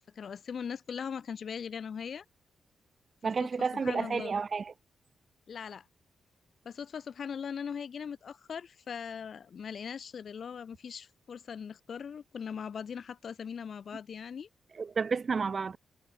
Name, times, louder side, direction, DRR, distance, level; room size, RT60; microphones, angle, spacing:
voice 1, 0.1-2.2 3.4-3.5 3.8-4.3 5.5-5.8 6.6-14.5, left 7 dB, 45° left, 4.1 m, -40 dB
voice 2, 3.2-4.7 14.8-15.8, right 5 dB, 30° right, 0.8 m, -31 dB
wide cardioid pair, 175°, 0 cm